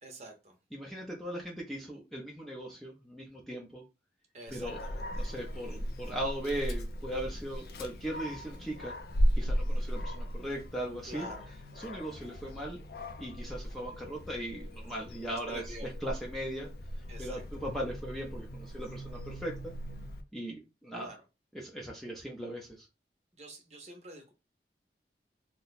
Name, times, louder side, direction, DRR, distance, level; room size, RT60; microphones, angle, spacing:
voice 1, 0.0-0.6 4.3-5.3 11.1-11.5 15.3-15.9 17.1-17.4 21.0-21.2 23.4-24.3, right 1 dB, 40° right, 3 dB, 0.8 m, -47 dB
voice 2, 0.7-3.8 4.5-4.8 5.1-8.9 9.3-11.3 11.8-12.8 13.2-16.7 17.2-19.7 20.3-21.1 21.5-22.9, right 1 dB, ahead, -3 dB, 0.6 m, -38 dB
Dog, 4.5-20.2, equal, 60° left, 0.5 m, -36 dB
2.8 x 2.2 x 4.0 m, 0.28 s
head